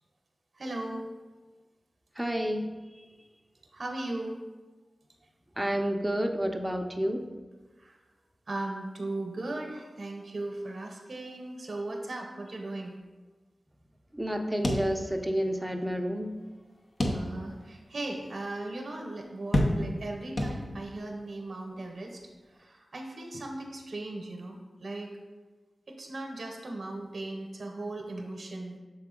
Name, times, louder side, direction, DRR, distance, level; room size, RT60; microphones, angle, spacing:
voice 1, 0.5-1.1 3.7-4.4 7.8-8.0 8.5-12.9 17.1-22.2 22.5-25.2 25.9-28.8, right 2 dB, 70° right, 2 dB, 0.8 m, -37 dB
voice 2, 2.2-2.7 5.6-7.2 14.1-16.4, equal, 10° right, 4 dB, 0.6 m, -30 dB
sound 1, 14.6-15.5 15.8-15.9 17.0-17.6 18.2-18.3 19.5-20.1 20.4-21.0, left 1 dB, 50° left, 0.8 m, -29 dB
6.8 x 3.8 x 3.7 m, 1.3 s
cardioid pair, 50°, 0 cm